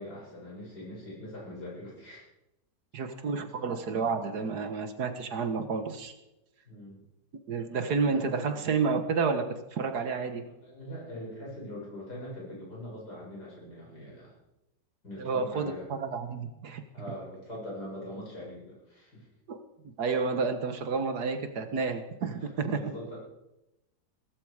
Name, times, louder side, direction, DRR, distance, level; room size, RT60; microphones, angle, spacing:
voice 1, 0.0-2.2 3.4-3.5 6.7-7.0 10.6-14.4 15.0-15.9 16.9-19.3 22.4-23.2, left 1 dB, 60° left, -5 dB, 7.6 m, -42 dB
voice 2, 2.9-6.1 7.5-9.4 9.7-10.4 15.2-16.8 19.5-19.6 20.0-22.8, right 5 dB, 60° right, 9 dB, 1.8 m, -30 dB
17.0 x 14.5 x 4.9 m, 0.92 s
omnidirectional pair, 2.0 m